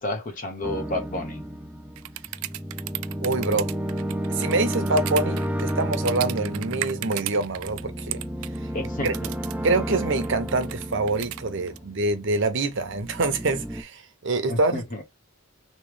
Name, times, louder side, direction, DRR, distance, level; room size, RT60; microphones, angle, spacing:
voice 1, 0.0-1.4 8.7-9.3 14.5-15.0, left 1 dB, 40° left, 0.9 m, -31 dB
sound 1, 0.6-12.3 12.7-13.8, equal, 5° right, 0.3 m, -32 dB
sound 2, 2.0-7.8 8.1-8.6 9.1-9.6 10.1-11.8, right 16 dB, 90° right, 0.3 m, -34 dB
voice 2, 3.2-3.7 4.3-8.2 9.0-9.1 9.6-14.8, right 3 dB, 60° right, 0.8 m, -25 dB
3.1 x 3.0 x 3.3 m
head